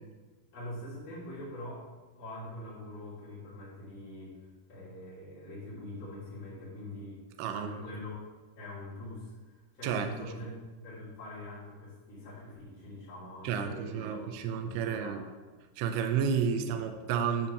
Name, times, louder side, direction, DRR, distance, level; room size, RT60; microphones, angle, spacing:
voice 1, 0.5-1.8 2.2-4.4 4.7-7.2 7.5-8.2 8.5-15.2, left 1 dB, 45° left, -12 dB, 4.5 m, -44 dB
voice 2, 7.4-7.7 9.8-10.3 13.4-15.2 15.8-17.5, right 7 dB, 80° right, 5 dB, 2.8 m, -31 dB
10.5 x 5.0 x 7.1 m, 1.4 s
omnidirectional pair, 5.3 m